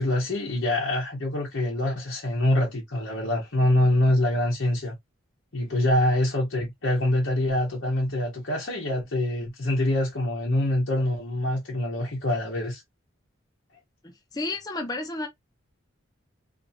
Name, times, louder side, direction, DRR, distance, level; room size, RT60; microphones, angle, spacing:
voice 1, 0.0-5.0 5.5-12.8, left 1 dB, 65° left, 0.9 m, -25 dB
voice 2, 14.0-15.3, left 2 dB, 20° left, 0.4 m, -32 dB
2.6 x 2.5 x 2.6 m
head